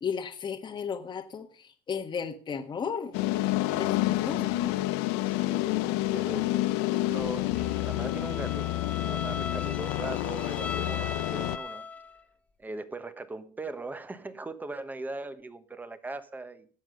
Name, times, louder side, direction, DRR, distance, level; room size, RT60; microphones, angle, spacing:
voice 1, 0.0-3.1 3.7-4.5, left 6 dB, 25° left, 1.4 m, -34 dB
sound 1, 3.1-11.6, left 17 dB, 75° left, 0.7 m, -29 dB
voice 2, 4.4-5.0 5.2-8.7 9.0-11.9 12.6-16.7, right 2 dB, 10° right, 1.2 m, -40 dB
Bowed string instrument, 7.5-12.2, left 4 dB, 10° left, 0.8 m, -39 dB
17.5 x 7.5 x 5.2 m
cardioid pair, 130°, 17 cm